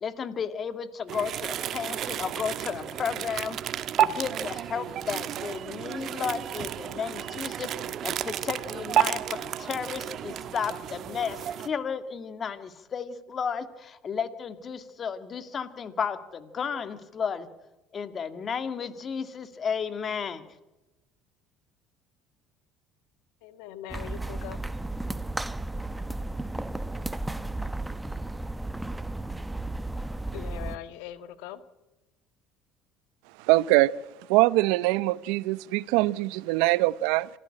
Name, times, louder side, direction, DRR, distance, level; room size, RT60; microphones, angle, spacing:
voice 1, 0.0-3.6 4.0-17.5 17.9-20.4, left 6 dB, 40° left, 2.1 m, -33 dB
sound 1, 1.1-11.7, right 10 dB, 55° right, 1.3 m, -31 dB
voice 2, 23.4-24.6 30.3-31.6, left 12 dB, 80° left, 1.6 m, -41 dB
sound 2, 23.9-30.8, right 2 dB, 10° right, 1.1 m, -34 dB
voice 3, 33.4-33.9 34.3-37.3, right 19 dB, 80° right, 0.7 m, -23 dB
26.5 x 14.5 x 8.9 m
supercardioid pair, 85°, 0 cm